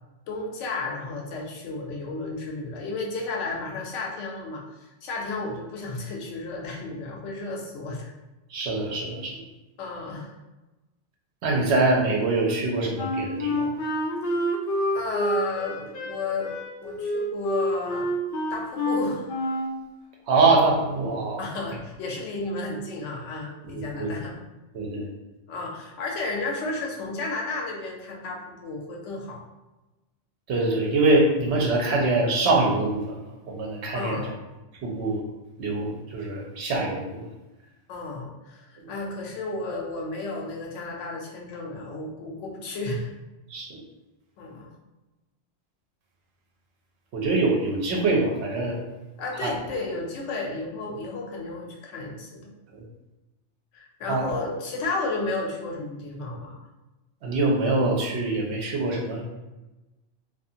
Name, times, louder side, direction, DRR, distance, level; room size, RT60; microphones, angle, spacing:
voice 1, 0.3-4.6 5.0-8.1 9.8-10.3 14.9-18.2 18.5-19.3 21.4-24.4 25.5-29.4 33.9-34.3 37.9-43.1 44.4-44.7 49.2-52.5 53.7-56.6, left 3 dB, 90° left, 0 dB, 0.9 m, -33 dB
voice 2, 8.5-9.4 11.4-13.7 20.3-21.4 23.7-24.1 24.7-25.1 30.5-33.2 33.5-34.2 34.8-35.2 35.6-37.3 43.5-43.8 47.1-48.8 49.4-49.5 52.7-52.8 54.1-54.3 57.2-59.2, right 2 dB, 70° right, -1 dB, 0.9 m, -24 dB
Wind instrument woodwind instrument, 13.0-19.8, equal, 60° left, 0.7 m, -28 dB
2.4 x 2.4 x 2.7 m, 1.1 s
omnidirectional pair, 1.2 m